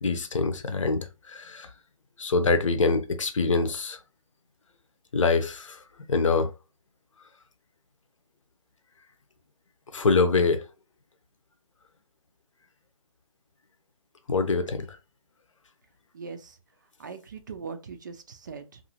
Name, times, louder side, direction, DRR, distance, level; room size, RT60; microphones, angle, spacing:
voice 1, 0.0-1.7 2.2-4.0 5.1-5.8 6.1-6.5 9.9-10.6 14.3-15.0, left 4 dB, 65° left, 0.7 m, -24 dB
voice 2, 16.1-16.6 17.0-18.8, right 5 dB, 35° right, 0.4 m, -40 dB
2.7 x 2.5 x 2.7 m
hypercardioid pair, 155°, 18 cm